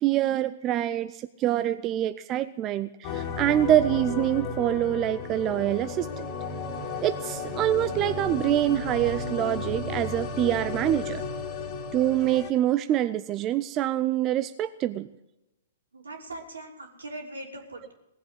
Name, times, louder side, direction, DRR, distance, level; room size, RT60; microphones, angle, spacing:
voice 1, 0.0-6.2 7.0-11.2 11.9-15.1, right 12 dB, 30° right, 12 dB, 0.5 m, -25 dB
sound 1, 3.0-12.5, left 4 dB, 35° left, 2.2 m, -34 dB
voice 2, 15.9-17.9, right 2 dB, 75° right, 3 dB, 3.2 m, -40 dB
18.5 x 7.7 x 9.8 m, 0.93 s
figure-of-eight pair, 115°, 0 cm